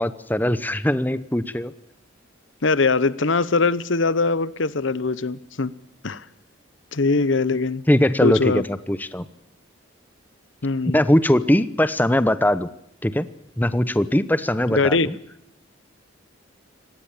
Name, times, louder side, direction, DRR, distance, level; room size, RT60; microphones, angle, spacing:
voice 1, 0.0-1.7 7.9-9.3 10.9-12.7 13.0-13.3 13.6-15.2, left 1 dB, 10° left, 14 dB, 0.8 m, -20 dB
voice 2, 2.6-5.7 6.0-6.2 6.9-7.8 8.2-8.6 10.6-11.0 14.7-15.1, left 3 dB, 75° left, 18 dB, 0.9 m, -21 dB
26.0 x 18.5 x 7.2 m, 0.78 s
head